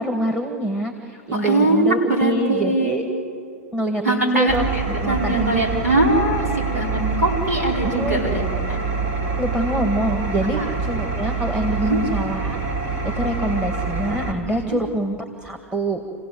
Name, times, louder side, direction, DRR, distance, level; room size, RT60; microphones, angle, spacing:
voice 1, 0.0-3.1 3.7-5.9 7.9-8.2 9.4-12.6 12.9-16.0, right 1 dB, 10° right, 3 dB, 2.0 m, -25 dB
voice 2, 1.3-3.0 4.0-8.8 10.6-10.7 11.8-12.0 14.4-14.8, right 2 dB, 80° right, -1 dB, 5.2 m, -21 dB
Engine, 4.5-14.3, right 4 dB, 55° right, 4.1 m, -26 dB
28.0 x 16.0 x 7.9 m, 2.6 s
hypercardioid pair, 100°, 8 cm